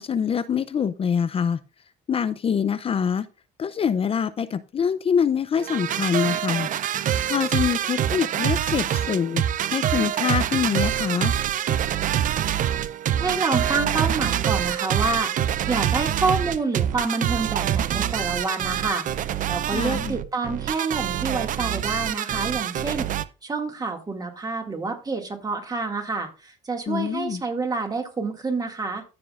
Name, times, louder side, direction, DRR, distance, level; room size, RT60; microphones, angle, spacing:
voice 1, 0.0-1.6 2.1-3.3 3.6-6.7 7.3-9.4 9.7-11.3 19.7-20.1 26.9-27.4, left 7 dB, 35° left, 0.5 m, -25 dB
sound 1, 5.6-23.2, right 10 dB, 50° right, 0.5 m, -25 dB
voice 2, 13.2-23.1 23.4-29.0, right 3 dB, 20° right, 2.1 m, -28 dB
14.0 x 6.0 x 2.5 m
cardioid pair, 110°, 17 cm